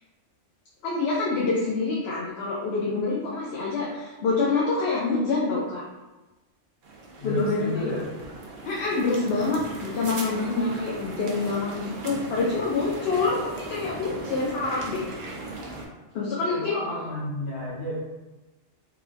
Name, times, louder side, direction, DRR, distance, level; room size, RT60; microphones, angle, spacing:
voice 1, 0.8-5.8 7.2-7.9 8.6-15.0 16.1-16.7, left 3 dB, 65° left, -4 dB, 0.7 m, -26 dB
sound 1, 6.8-15.9, right 2 dB, 55° right, 0.6 m, -38 dB
voice 2, 7.2-8.1 16.5-17.9, left 1 dB, 45° left, -7 dB, 1.1 m, -31 dB
3.7 x 2.2 x 2.5 m, 1.1 s
omnidirectional pair, 1.3 m